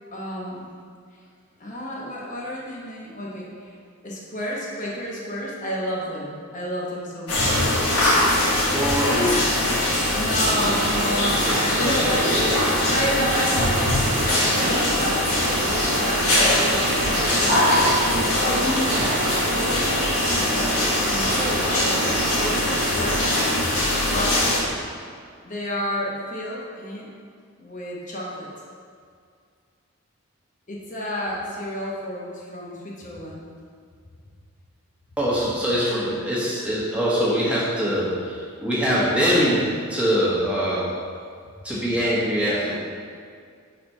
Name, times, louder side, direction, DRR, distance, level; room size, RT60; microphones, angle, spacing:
voice 1, 0.1-0.7 1.6-3.7 4.0-7.6 8.3-8.9 10.1-17.9 18.1-19.2 19.5-23.4 24.0-24.4 25.4-27.1 27.6-28.5 30.7-33.5, equal, 35° left, -4 dB, 1.0 m, -31 dB
sound 1, 7.3-24.6, left 1 dB, 85° left, 1.5 m, -22 dB
voice 2, 8.7-9.7 11.4-11.6 11.8-12.1 35.2-40.9 41.6-42.7, equal, 5° right, -8 dB, 1.3 m, -23 dB
sound 2, 10.4-23.2, right 2 dB, 45° right, 0.6 m, -29 dB
4.4 x 4.2 x 5.4 m, 2.2 s
head